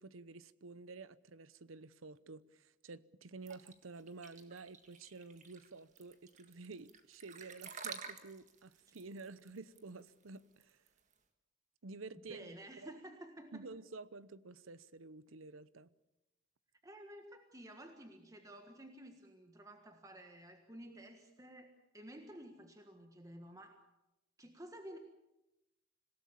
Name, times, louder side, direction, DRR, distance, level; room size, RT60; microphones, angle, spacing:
voice 1, 0.0-10.8 11.8-12.5 12.8-12.9 13.5-15.9, right 3 dB, 90° right, 0.9 m, -51 dB
sound 1, 3.5-11.1, right 6 dB, 35° right, 1.8 m, -51 dB
voice 2, 12.3-13.7 16.8-23.8 24.4-25.0, right 1 dB, 15° right, 1.5 m, -53 dB
26.5 x 17.5 x 7.2 m
head